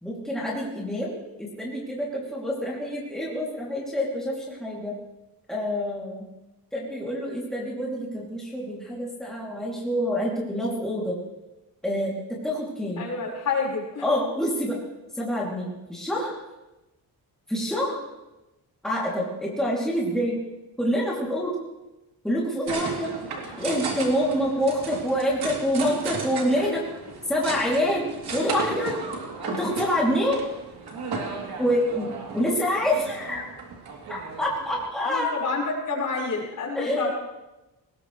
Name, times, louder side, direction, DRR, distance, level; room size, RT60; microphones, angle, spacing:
voice 1, 0.0-5.0 5.5-6.3 6.7-11.2 11.8-13.1 14.0-14.8 15.1-16.3 17.5-18.0 18.8-20.4 20.8-21.6 22.2-23.1 23.4-26.8 27.3-29.0 29.5-30.4 31.6-33.5 34.1-35.5 36.7-37.1, equal, ahead, -5 dB, 2.7 m, -27 dB
voice 2, 13.0-14.0 35.1-37.1, left 4 dB, 50° left, -3 dB, 4.9 m, -28 dB
sound 1, 22.7-34.9, right 4 dB, 75° right, 3.2 m, -35 dB
20.5 x 18.5 x 3.2 m, 1.0 s
wide cardioid pair, 165°, 39 cm